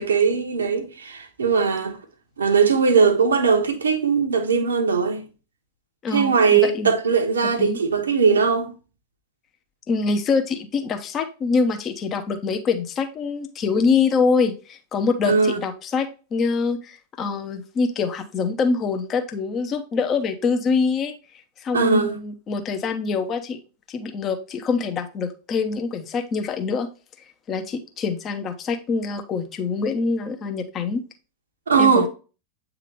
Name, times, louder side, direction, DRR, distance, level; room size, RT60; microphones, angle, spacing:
voice 1, 0.0-2.0 2.4-5.2 6.1-8.7 15.3-15.6 21.7-22.2 31.7-32.1, right 5 dB, 70° right, 1.1 m, -19 dB
voice 2, 6.0-7.0 7.6-7.8 9.9-21.1 21.6-23.6 23.9-26.9 27.5-31.0 31.8-32.1, left 4 dB, 30° left, 1.0 m, -24 dB
8.3 x 3.7 x 3.1 m
figure-of-eight pair, 90°, 0 cm